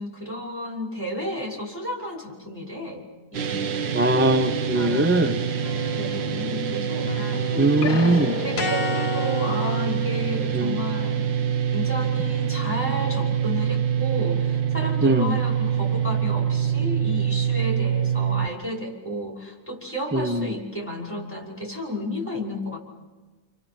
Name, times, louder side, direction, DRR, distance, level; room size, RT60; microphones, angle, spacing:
voice 1, 0.0-3.9 4.8-5.1 5.9-11.3 11.7-22.8, left 1 dB, 5° left, -2 dB, 5.2 m, -32 dB
sound 1, 3.3-18.5, right 8 dB, 80° right, 1.7 m, -25 dB
voice 2, 3.9-5.4 7.6-8.3 10.5-10.8 15.0-15.4 20.1-20.5, right 1 dB, 10° right, 8 dB, 0.6 m, -21 dB
sound 2, 5.6-6.7 7.0-10.6, left 4 dB, 55° left, 1.4 m, -32 dB
29.0 x 28.5 x 6.1 m, 1.3 s
omnidirectional pair, 1.9 m